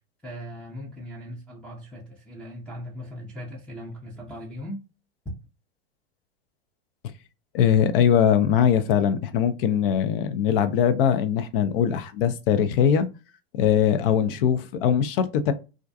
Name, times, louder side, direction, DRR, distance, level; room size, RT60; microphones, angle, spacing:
voice 1, 0.2-4.8, equal, 5° left, 0.5 m, -39 dB
voice 2, 7.5-13.1 13.5-15.5, left 8 dB, 55° left, 0.5 m, -21 dB
2.4 x 2.1 x 2.6 m
hypercardioid pair, 115°, 32 cm